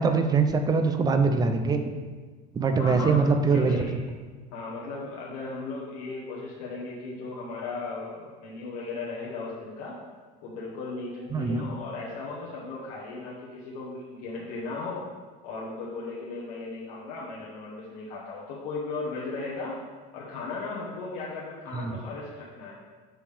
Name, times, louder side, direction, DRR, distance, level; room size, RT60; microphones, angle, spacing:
voice 1, 0.0-1.8 2.6-3.8 11.3-11.7 21.7-22.0, right 4 dB, 20° right, 7 dB, 0.4 m, -23 dB
voice 2, 2.8-4.0 4.5-9.9 10.4-15.0 15.4-19.8 20.1-22.7, left 3 dB, 85° left, -5 dB, 1.2 m, -36 dB
7.5 x 5.1 x 3.4 m, 1.4 s
cardioid pair, 150°, 19 cm